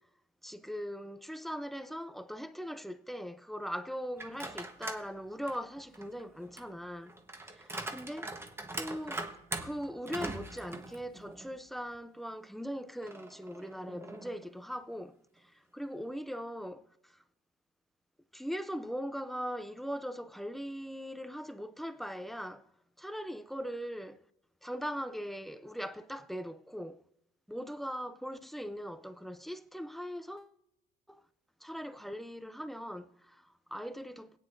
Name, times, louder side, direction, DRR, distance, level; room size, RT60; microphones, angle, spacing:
voice 1, 0.4-7.2 7.5-8.4 8.8-9.3 9.6-17.2 18.3-22.7 23.0-24.2 24.6-27.0 27.5-30.5 31.1-31.2 31.6-34.4, equal, ahead, 0.5 m, -40 dB
sound 1, 4.2-5.1 5.5-11.6 11.9-12.0 13.0-14.5, right 2 dB, 15° right, 1.2 m, -42 dB
21.0 x 9.1 x 2.6 m
cardioid pair, 110°, 17 cm